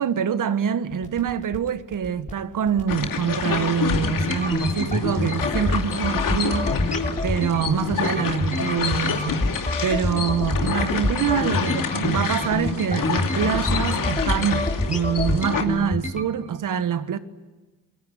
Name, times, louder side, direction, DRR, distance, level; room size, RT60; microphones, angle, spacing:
voice 1, 0.0-6.7 7.2-9.4 9.8-17.2, right 8 dB, 55° right, 1.5 m, -25 dB
sound 1, 0.9-16.2, left 2 dB, 20° left, 3.7 m, -27 dB
sound 2, 2.9-15.6, left 6 dB, 60° left, 2.8 m, -28 dB
27.5 x 22.0 x 9.3 m
hypercardioid pair, 45°, 37 cm